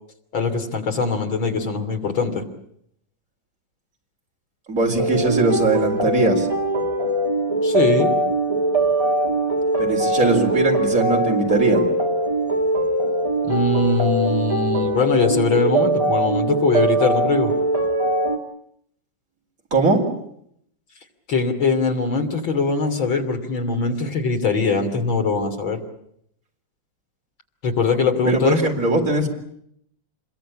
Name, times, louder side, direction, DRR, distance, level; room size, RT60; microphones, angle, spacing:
voice 1, 0.3-2.5 7.6-8.1 13.4-17.5 21.3-25.8 27.6-28.6, left 4 dB, 80° left, 4 dB, 3.7 m, -21 dB
voice 2, 4.7-6.5 9.8-11.9 19.7-20.0 28.2-29.3, right 3 dB, 45° right, 1 dB, 4.4 m, -20 dB
sound 1, 5.0-18.4, right 2 dB, 20° right, 1.7 m, -21 dB
27.0 x 22.0 x 8.7 m, 0.73 s
omnidirectional pair, 2.1 m